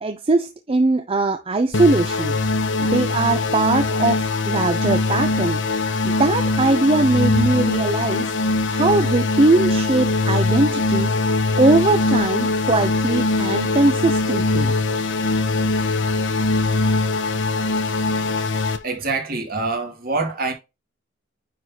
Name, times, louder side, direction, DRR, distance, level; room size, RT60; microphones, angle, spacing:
voice 1, 0.0-2.3 2.8-5.6 6.2-8.3 8.7-11.1 11.6-14.7, right 2 dB, 30° right, 0.5 m, -20 dB
sound 1, 1.7-18.8, left 3 dB, 65° left, 0.8 m, -21 dB
voice 2, 18.8-20.5, right 3 dB, 50° right, 2.1 m, -25 dB
9.4 x 4.0 x 2.8 m
head